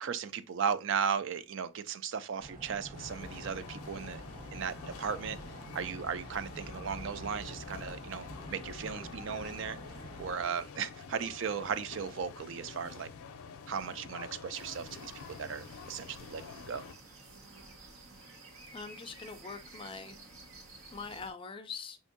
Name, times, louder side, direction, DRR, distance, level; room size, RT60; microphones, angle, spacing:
voice 1, 0.0-4.2 4.5-5.4 5.7-9.8 10.2-13.1 13.7-16.8, right 6 dB, 60° right, 0.4 m, -36 dB
sound 1, 2.4-10.3, right 1 dB, 40° right, 1.0 m, -48 dB
sound 2, 2.9-16.9, left 5 dB, 90° left, 0.5 m, -48 dB
sound 3, 14.5-21.3, right 2 dB, 85° right, 1.4 m, -52 dB
voice 2, 18.7-20.2 20.9-22.0, left 5 dB, 25° left, 0.4 m, -43 dB
6.0 x 2.6 x 2.5 m
head